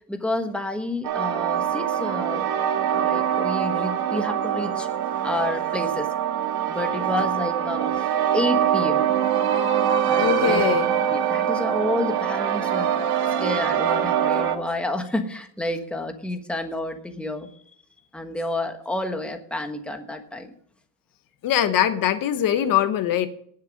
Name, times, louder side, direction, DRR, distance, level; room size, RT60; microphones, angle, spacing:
voice 1, 0.1-2.5 2.9-4.9 5.2-6.1 6.7-9.1 10.1-10.6 11.1-12.9 13.4-17.5 18.1-20.5, left 1 dB, 5° left, 5 dB, 1.3 m, -29 dB
sound 1, 1.0-14.6, right 9 dB, 80° right, 1.6 m, -24 dB
voice 2, 10.2-10.9 21.4-23.3, left 10 dB, 60° left, 10 dB, 1.2 m, -22 dB
18.5 x 6.7 x 5.2 m, 0.64 s
cardioid pair, 140°, 37 cm